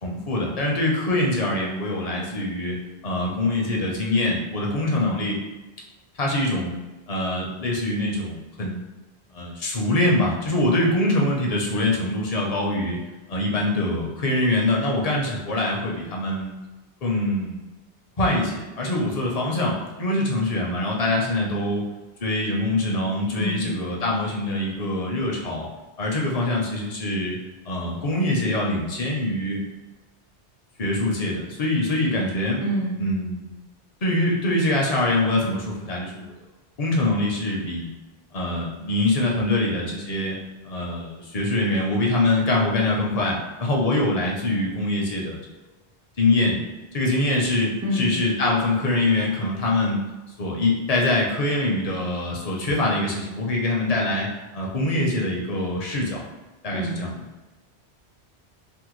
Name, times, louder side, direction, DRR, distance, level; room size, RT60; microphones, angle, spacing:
voice 1, 0.0-2.8 3.0-5.4 6.2-6.7 7.1-8.8 9.3-13.0 13.3-16.5 17.0-17.6 18.2-21.8 22.2-25.7 26.0-27.4 27.7-29.6 30.8-32.6 32.9-33.6 34.0-36.3 36.8-37.9 38.3-40.4 40.6-45.4 46.2-46.6 46.9-50.0 50.4-54.3 54.5-56.2 56.6-57.2, left 1 dB, 45° left, -2 dB, 0.6 m, -24 dB
voice 2, 32.6-32.9 47.8-48.1 56.7-57.0, equal, 30° right, -4 dB, 0.3 m, -26 dB
3.5 x 2.1 x 3.0 m, 1.1 s
omnidirectional pair, 1.1 m